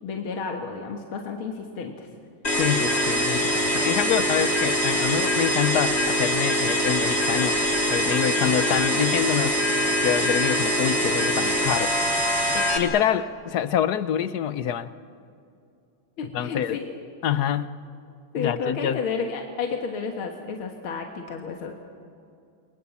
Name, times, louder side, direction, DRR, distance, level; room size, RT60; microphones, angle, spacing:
voice 1, 0.0-2.1 16.2-16.9 18.3-21.7, left 5 dB, 80° left, 2 dB, 2.4 m, -31 dB
sound 1, 2.4-12.8, equal, 30° left, 3.3 m, -23 dB
voice 2, 2.6-7.6 7.9-9.6 10.0-12.1 12.5-14.9 16.3-16.8 17.2-17.7 18.4-19.0, left 9 dB, 60° left, 14 dB, 1.1 m, -26 dB
30.0 x 22.5 x 7.2 m, 2.5 s
omnidirectional pair, 2.3 m